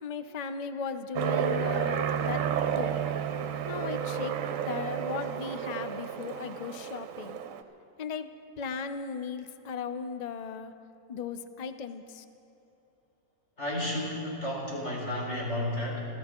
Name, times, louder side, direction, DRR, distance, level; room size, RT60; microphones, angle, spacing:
voice 1, 0.0-2.4 2.7-2.9 3.6-4.4 4.7-7.4 8.0-8.3 8.6-10.7 11.1-12.2, left 6 dB, 90° left, 9 dB, 0.3 m, -37 dB
Aircraft, 1.1-7.6, right 8 dB, 65° right, 1.0 m, -31 dB
voice 2, 13.6-16.0, left 1 dB, 45° left, -5 dB, 4.6 m, -32 dB
28.5 x 13.5 x 3.7 m, 2.9 s
omnidirectional pair, 1.7 m